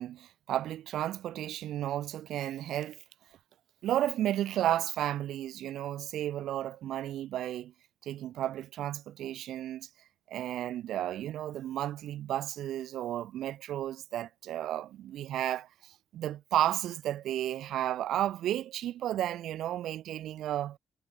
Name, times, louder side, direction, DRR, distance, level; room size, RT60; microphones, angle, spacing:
voice 1, 0.0-3.0 3.8-7.7 8.0-9.9 10.3-20.8, right 12 dB, 80° right, 0.6 m, -33 dB
cardioid pair, 90°, 0 cm